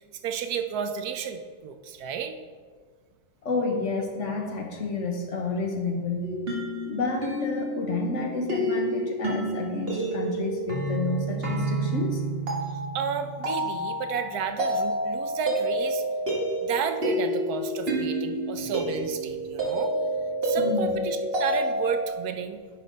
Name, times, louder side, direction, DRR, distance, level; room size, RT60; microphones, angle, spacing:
voice 1, 0.0-2.3 12.7-16.0 16.6-19.9 20.4-22.6, right 7 dB, 85° right, 7 dB, 1.2 m, -32 dB
voice 2, 3.4-6.5 6.9-12.2 20.6-21.0, left 3 dB, 55° left, 2 dB, 1.3 m, -30 dB
sound 1, 6.2-22.1, right 1 dB, 40° right, 1.6 m, -29 dB
9.9 x 4.2 x 5.1 m, 1.6 s
omnidirectional pair, 1.6 m